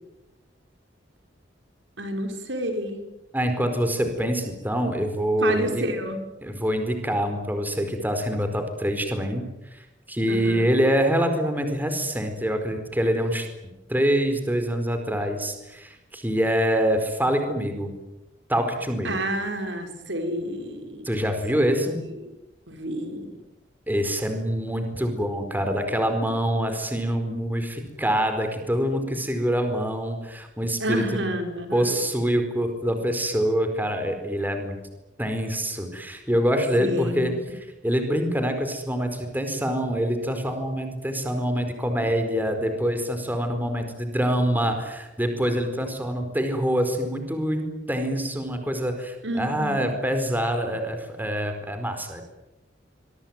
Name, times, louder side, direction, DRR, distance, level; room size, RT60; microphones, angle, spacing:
voice 1, 2.0-3.0 5.4-6.2 10.3-10.7 19.0-21.0 22.7-23.3 30.8-32.0 36.8-37.5 49.2-50.0, right 1 dB, 80° right, 5 dB, 5.8 m, -29 dB
voice 2, 3.3-5.8 6.4-9.5 9.7-9.8 10.1-13.5 13.9-17.9 18.5-19.2 21.0-22.0 23.9-31.0 31.7-34.8 35.2-52.2, equal, 10° right, 6 dB, 4.6 m, -25 dB
26.0 x 23.0 x 9.4 m, 1.0 s
head